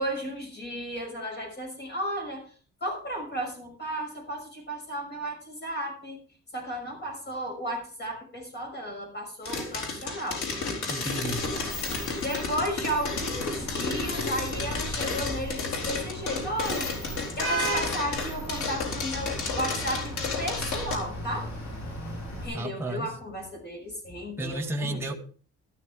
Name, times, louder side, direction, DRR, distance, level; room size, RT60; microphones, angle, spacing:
voice 1, 0.0-2.4 2.8-6.2 6.5-10.4 12.2-21.5 22.4-25.0, equal, 35° left, 5.9 m, -34 dB
sound 1, 9.4-20.9, left 4 dB, 80° left, 3.5 m, -32 dB
voice 2, 10.9-11.5 22.5-23.1 24.4-25.1, right 1 dB, 10° right, 1.0 m, -32 dB
Vehicle horn car horn honking / Traffic noise roadway noise, 11.3-22.5, right 1 dB, 65° left, 6.6 m, -36 dB
12.5 x 12.0 x 3.6 m
wide cardioid pair, 170°, 30 cm